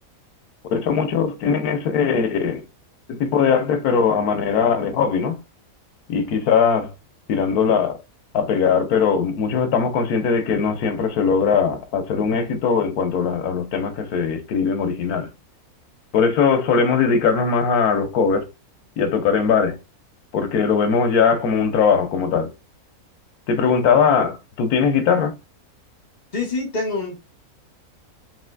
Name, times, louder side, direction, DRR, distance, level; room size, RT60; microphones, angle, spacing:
voice 1, 0.7-2.6 3.1-5.4 6.1-6.9 7.3-8.0 8.3-15.3 16.1-18.5 19.0-19.8 20.3-22.5 23.5-25.3, left 6 dB, 90° left, 1.3 m, -20 dB
voice 2, 26.3-27.2, left 3 dB, 30° left, 1.6 m, -25 dB
5.9 x 2.7 x 2.2 m
omnidirectional pair, 1.5 m